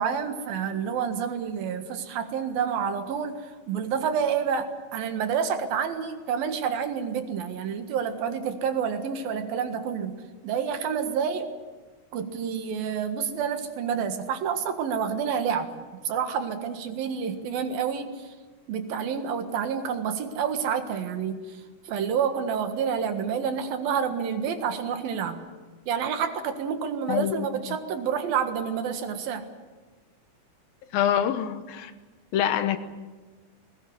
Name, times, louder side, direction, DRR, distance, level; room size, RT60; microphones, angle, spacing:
voice 1, 0.0-11.5 12.1-18.3 18.7-21.6 21.9-25.4 25.9-29.5, right 7 dB, 85° right, 7 dB, 3.5 m, -29 dB
voice 2, 27.1-27.8 30.9-31.9 32.3-32.8, left 10 dB, 90° left, 10 dB, 3.1 m, -26 dB
20.0 x 19.5 x 9.8 m, 1.3 s
omnidirectional pair, 4.1 m